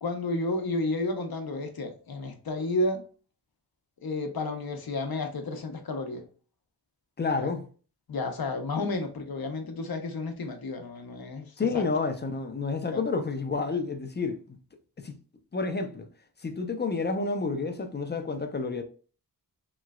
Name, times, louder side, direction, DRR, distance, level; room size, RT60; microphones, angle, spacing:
voice 1, 0.0-3.0 4.0-6.2 7.4-7.5 8.1-11.5 11.7-11.9 12.9-13.0, left 2 dB, 60° left, 0.7 m, -31 dB
voice 2, 7.2-7.7 11.6-14.6 15.0-15.1 15.5-16.1 16.4-18.8, left 4 dB, 25° left, 0.5 m, -30 dB
3.1 x 3.0 x 2.3 m
wide cardioid pair, 85°, 41 cm